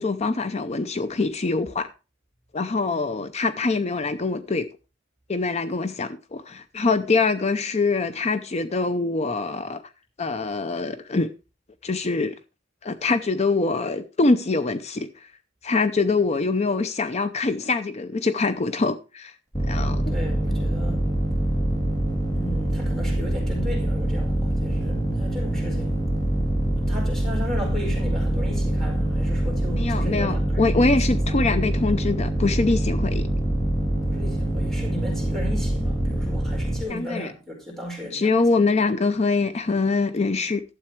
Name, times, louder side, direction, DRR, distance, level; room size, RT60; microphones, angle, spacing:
voice 1, 0.0-1.9 2.5-4.7 5.3-9.8 10.2-11.3 11.8-12.3 12.8-15.3 15.6-19.3 19.7-20.1 29.7-33.3 36.9-37.3 38.1-40.6, left 3 dB, 35° left, 0.6 m, -24 dB
voice 2, 2.9-3.2 20.1-21.0 22.3-26.0 26.9-30.7 31.3-31.5 34.1-38.6, left 1 dB, ahead, 4.7 m, -36 dB
sound 1, 19.5-36.8, right 1 dB, 20° left, 2.8 m, -24 dB
12.0 x 7.9 x 4.5 m
head